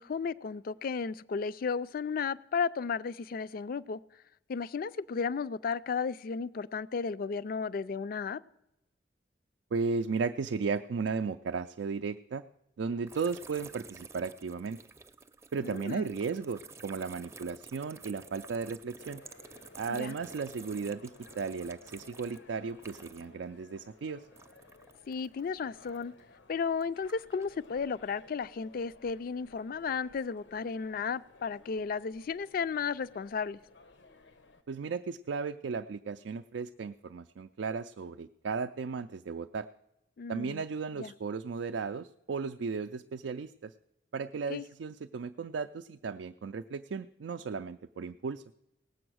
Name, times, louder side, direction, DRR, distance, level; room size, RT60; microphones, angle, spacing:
voice 1, 0.0-4.0 4.5-8.4 15.6-16.1 19.9-20.2 25.1-26.1 26.5-33.6 40.2-40.6 40.9-41.1 44.5-44.6, left 5 dB, 55° left, 17 dB, 0.4 m, -34 dB
voice 2, 9.7-12.4 12.8-14.8 15.5-19.2 19.8-24.2 34.7-39.7 40.3-43.7 44.1-48.4, right 5 dB, 85° right, 8 dB, 0.4 m, -35 dB
sound 1, 13.1-23.4 23.7-26.2 26.7-27.6, right 4 dB, 15° right, 0.5 m, -51 dB
sound 2, 19.0-34.6, left 3 dB, 90° left, 1.0 m, -57 dB
18.0 x 7.8 x 6.2 m, 0.88 s
head